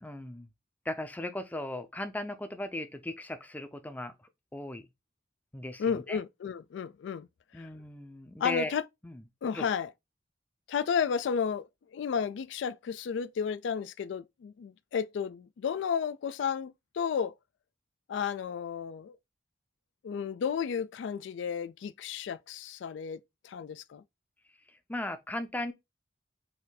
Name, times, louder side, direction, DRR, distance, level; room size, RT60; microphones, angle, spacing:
voice 1, 0.0-0.5 0.8-4.1 4.5-4.9 5.5-6.2 7.5-8.7 9.0-9.2 9.5-9.6 24.7-25.7, left 1 dB, 10° left, 0.5 m, -37 dB
voice 2, 5.8-7.3 7.5-7.7 8.4-8.8 9.4-9.9 10.7-17.3 18.1-19.2 20.0-23.2 23.4-24.0, left 7 dB, 80° left, 0.3 m, -32 dB
4.3 x 2.6 x 3.9 m
head